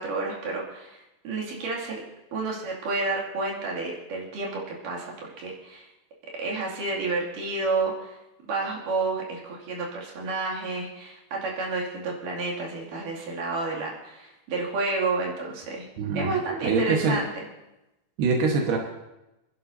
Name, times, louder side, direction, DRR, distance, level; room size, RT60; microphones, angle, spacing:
voice 1, 0.0-2.0 2.3-5.9 6.4-8.1 8.5-15.8 16.1-17.3, right 3 dB, 60° right, -3 dB, 4.0 m, -30 dB
voice 2, 16.0-16.3 16.6-17.2 18.2-18.8, right 4 dB, 85° right, 1 dB, 3.4 m, -23 dB
28.0 x 11.5 x 2.7 m, 0.95 s
omnidirectional pair, 4.4 m